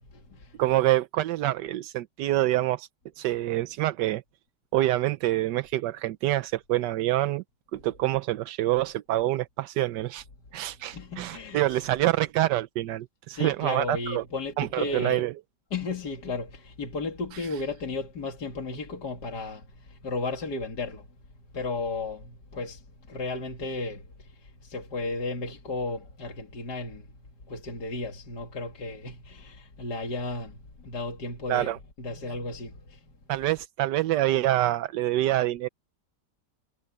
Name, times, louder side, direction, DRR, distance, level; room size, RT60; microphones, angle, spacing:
voice 1, 0.6-2.9 3.2-4.2 4.7-7.4 7.7-10.2 10.5-14.2 14.6-15.3 31.5-31.8 33.3-35.7, right 15 dB, 80° right, 1.2 m, -26 dB
voice 2, 10.9-11.8 13.3-15.2 15.7-21.0 21.5-22.8 23.1-24.0 24.6-27.0 27.5-31.7 32.0-33.0, left 3 dB, 70° left, 2.9 m, -34 dB
omnidirectional pair, 1.9 m